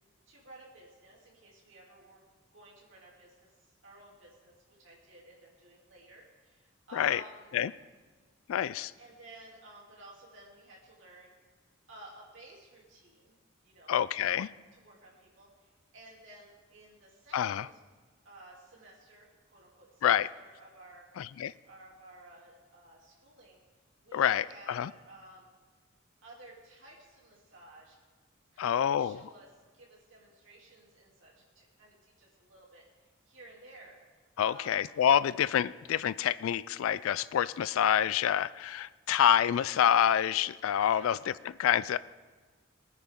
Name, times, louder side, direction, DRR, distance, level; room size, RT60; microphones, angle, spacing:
voice 1, 0.3-2.2 2.5-3.5 3.8-7.5 9.0-11.3 11.9-13.3 13.6-14.4 14.7-17.7 18.2-21.1 21.7-23.6 24.0-25.5 26.2-28.0 28.5-34.9 40.9-41.1, right 1 dB, 70° right, -4 dB, 2.9 m, -54 dB
voice 2, 8.5-8.9 13.9-14.5 17.3-17.7 20.0-20.3 21.2-21.5 24.1-24.9 28.6-29.2 34.4-41.2 41.6-42.0, left 9 dB, 85° left, 18 dB, 0.3 m, -27 dB
21.5 x 9.7 x 3.7 m, 1.4 s
head